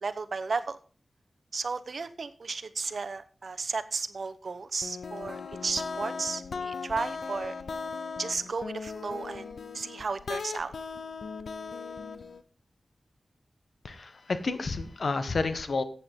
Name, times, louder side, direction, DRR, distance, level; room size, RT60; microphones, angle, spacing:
voice 1, 0.0-0.8 1.5-7.5 8.2-9.5 9.7-10.7, right 4 dB, 65° right, 11 dB, 0.9 m, -34 dB
sound 1, 4.8-12.4, left 5 dB, 85° left, 0.8 m, -38 dB
voice 2, 13.8-15.8, left 3 dB, 65° left, 10 dB, 1.4 m, -30 dB
14.5 x 8.8 x 3.8 m, 0.39 s
wide cardioid pair, 100°, 0 cm